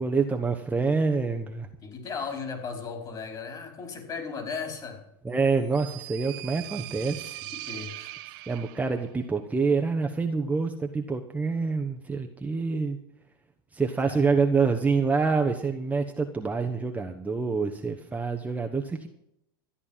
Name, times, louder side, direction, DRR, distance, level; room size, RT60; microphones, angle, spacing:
voice 1, 0.0-1.7 5.2-7.4 8.5-13.0 13.7-19.1, right 4 dB, 10° right, 3 dB, 1.1 m, -26 dB
voice 2, 1.8-5.0 7.5-8.2 14.1-14.3, left 5 dB, 30° left, 4 dB, 4.7 m, -36 dB
sound 1, 5.4-9.1, right 18 dB, 65° right, 0.9 m, -41 dB
13.5 x 9.8 x 7.4 m, 0.79 s
supercardioid pair, 115°, 13 cm